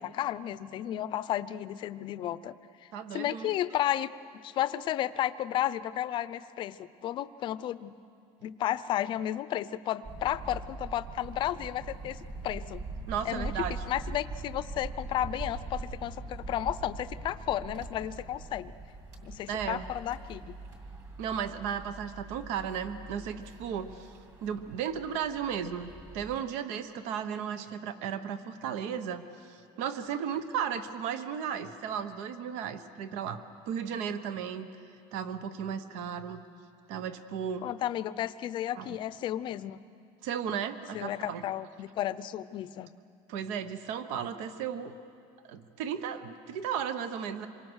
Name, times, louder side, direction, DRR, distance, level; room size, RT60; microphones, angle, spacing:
voice 1, 0.0-2.6 2.8-4.1 4.4-7.9 8.4-12.2 12.4-12.8 13.2-13.5 13.9-18.7 19.2-20.4 37.6-39.8 40.9-42.9, left 12 dB, 40° left, 15 dB, 0.6 m, -33 dB
voice 2, 2.9-3.5 13.1-13.8 19.5-19.9 21.2-34.7 35.1-36.4 36.9-37.7 38.7-39.0 40.2-41.4 43.3-44.9 45.5-47.5, right 8 dB, 70° right, 11 dB, 1.1 m, -35 dB
sound 1, 10.0-26.4, right 3 dB, 30° right, 2.6 m, -42 dB
27.0 x 23.5 x 6.4 m, 2.5 s
cardioid pair, 155°, 12 cm